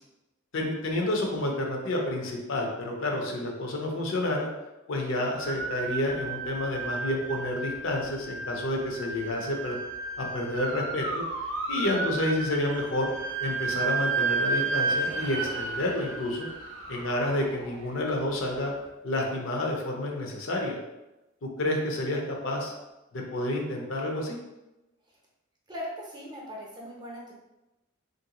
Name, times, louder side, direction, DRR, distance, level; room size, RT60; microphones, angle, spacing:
voice 1, 0.5-4.5 4.9-9.8 10.2-11.2 11.7-13.1 13.4-16.5 16.9-18.7 19.0-20.8 21.4-22.7 23.1-24.4, left 1 dB, 65° left, 0 dB, 0.6 m, -29 dB
sound 1, 5.4-18.4, right 3 dB, 65° right, 0.6 m, -33 dB
voice 2, 25.7-27.3, equal, 20° right, -3 dB, 0.6 m, -39 dB
3.2 x 2.5 x 2.8 m, 0.99 s
head